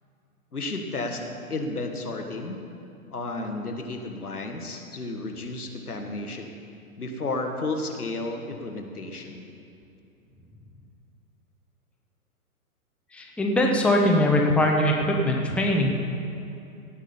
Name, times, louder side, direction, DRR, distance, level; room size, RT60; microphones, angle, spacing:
voice 1, 0.5-1.2 1.5-2.6 3.1-6.5 7.0-9.5, left 2 dB, 85° left, 4 dB, 1.7 m, -32 dB
voice 2, 13.1-15.9, left 1 dB, 5° left, 0 dB, 1.0 m, -21 dB
17.5 x 6.3 x 7.0 m, 2.6 s
figure-of-eight pair, 115°, 44 cm